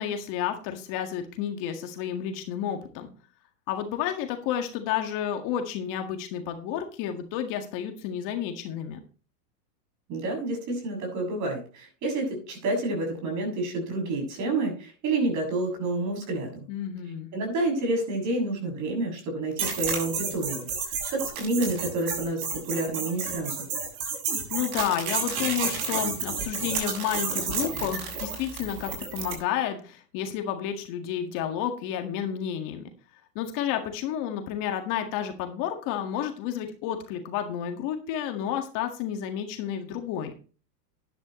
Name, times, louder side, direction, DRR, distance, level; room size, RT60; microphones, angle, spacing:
voice 1, 0.0-3.1 3.7-9.0 16.7-17.3 24.5-32.9 33.4-40.4, left 9 dB, 40° left, 5 dB, 1.9 m, -31 dB
voice 2, 10.1-16.7 17.3-23.7, right 2 dB, 35° right, 2 dB, 7.2 m, -29 dB
sound 1, 19.6-29.4, right 5 dB, 60° right, 7.4 m, -31 dB
12.0 x 11.0 x 3.1 m, 0.37 s
supercardioid pair, 135°, 48 cm